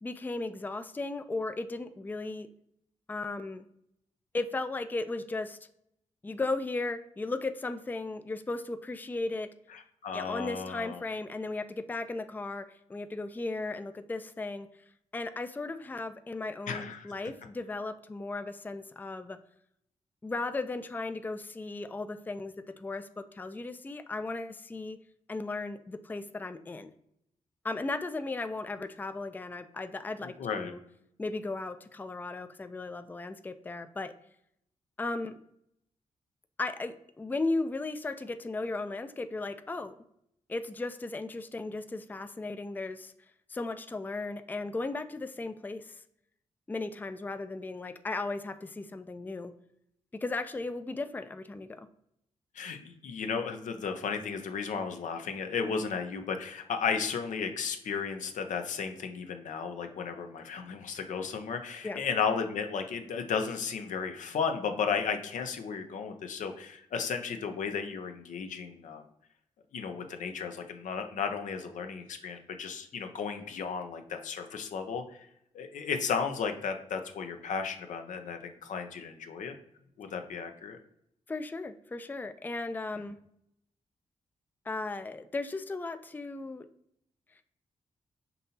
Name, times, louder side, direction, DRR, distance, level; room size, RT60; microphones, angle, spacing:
voice 1, 0.0-2.5 3.1-3.6 4.3-5.6 6.2-9.5 10.1-12.6 12.9-14.7 15.1-19.4 20.2-25.0 25.3-26.9 27.6-30.8 31.2-34.1 35.0-35.3 36.6-39.9 40.5-43.1 43.5-46.0 46.7-49.5 50.1-51.9 55.6-55.8 61.8-62.0 81.3-83.2 84.7-86.7, left 3 dB, 15° left, 10 dB, 0.3 m, -36 dB
voice 2, 9.7-11.0 16.7-17.2 30.2-30.7 52.5-69.0 69.7-75.0 75.5-79.5 80.0-80.8, left 6 dB, 80° left, 6 dB, 0.6 m, -34 dB
5.3 x 2.7 x 2.7 m, 0.75 s
cardioid pair, 55°, 13 cm